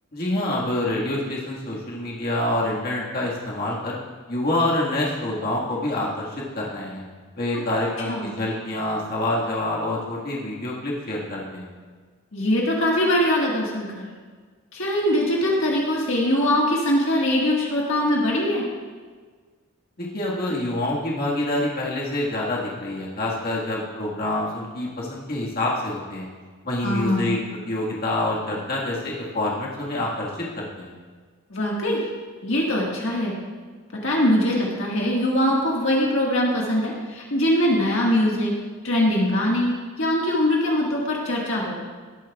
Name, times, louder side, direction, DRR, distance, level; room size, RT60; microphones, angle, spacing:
voice 1, 0.1-4.0 4.3-7.0 7.4-11.7 20.0-26.3 26.6-31.0, left 1 dB, 45° left, -4 dB, 1.7 m, -27 dB
voice 2, 12.3-14.1 14.7-18.6 26.8-27.4 31.5-32.1 32.4-33.3 34.0-38.5 38.8-41.7, left 1 dB, 60° left, -3 dB, 1.7 m, -22 dB
18.0 x 9.0 x 2.4 m, 1.5 s
head